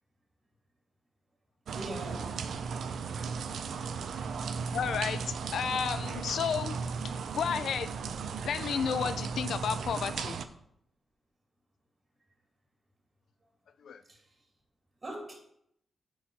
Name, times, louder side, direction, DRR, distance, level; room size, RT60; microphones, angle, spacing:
voice 1, 1.7-2.4 3.8-4.1 14.1-14.2 15.0-15.3, right 1 dB, 30° right, 0 dB, 2.6 m, -42 dB
sound 1, 1.7-10.5, right 5 dB, 75° right, 0.6 m, -36 dB
voice 2, 4.7-6.9 7.3-8.0 8.4-10.4 13.8-14.0, left 7 dB, 75° left, 13 dB, 0.5 m, -32 dB
8.8 x 4.6 x 5.4 m, 0.72 s
cardioid pair, 95°, 0 cm